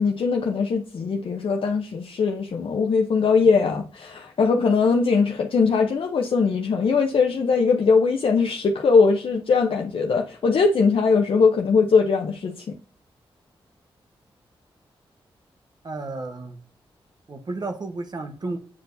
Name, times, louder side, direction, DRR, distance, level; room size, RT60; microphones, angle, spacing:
voice 1, 0.0-12.5, left 5 dB, 65° left, 2 dB, 0.6 m, -20 dB
voice 2, 15.8-16.6 17.3-18.6, right 3 dB, 45° right, 6 dB, 0.8 m, -32 dB
8.3 x 4.5 x 2.6 m, 0.43 s
cardioid pair, 65°, 10 cm